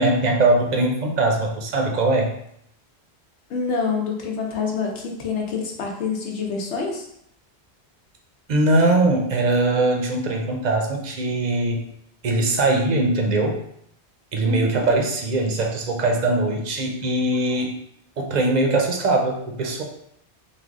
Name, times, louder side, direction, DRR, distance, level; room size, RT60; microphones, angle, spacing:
voice 1, 0.0-2.3 8.5-11.9 12.2-13.6 14.3-17.7 18.2-19.8, right 2 dB, 50° right, 2 dB, 0.6 m, -21 dB
voice 2, 3.5-7.0 14.4-14.9, left 4 dB, 85° left, 1 dB, 1.0 m, -27 dB
3.3 x 2.2 x 3.6 m, 0.72 s
omnidirectional pair, 1.1 m